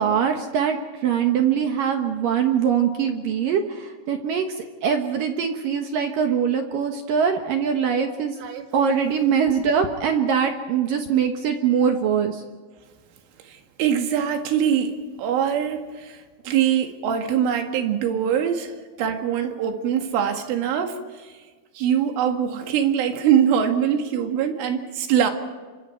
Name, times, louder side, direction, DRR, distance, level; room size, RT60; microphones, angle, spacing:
voice 1, 0.0-4.5 4.8-8.4 8.7-12.4, right 7 dB, 65° right, 4 dB, 2.3 m, -22 dB
voice 2, 13.4-21.3 21.8-25.3, right 8 dB, 90° right, 5 dB, 4.4 m, -23 dB
28.5 x 25.0 x 4.5 m, 1.4 s
omnidirectional pair, 5.5 m